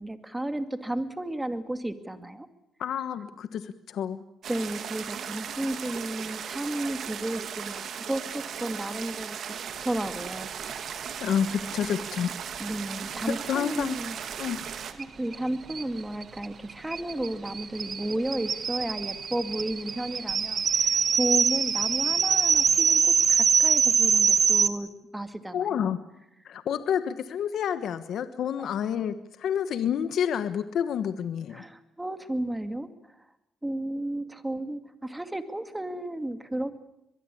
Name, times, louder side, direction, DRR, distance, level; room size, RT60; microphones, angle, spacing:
voice 1, 0.0-2.5 4.5-11.0 12.6-14.2 15.0-25.9 28.6-28.7 31.5-33.1 33.6-36.8, right 1 dB, 10° right, 9 dB, 2.4 m, -33 dB
voice 2, 2.8-4.2 11.2-12.3 13.3-14.0 14.4-14.6 25.5-26.0 26.4-31.6, left 8 dB, 70° left, 11 dB, 1.2 m, -29 dB
sound 1, 4.4-14.9, right 8 dB, 65° right, 2.1 m, -37 dB
sound 2, 15.0-15.1 15.3-15.4 15.7-24.7, right 6 dB, 45° right, 1.3 m, -24 dB
23.0 x 22.0 x 8.6 m, 0.85 s
cardioid pair, 90°, 0 cm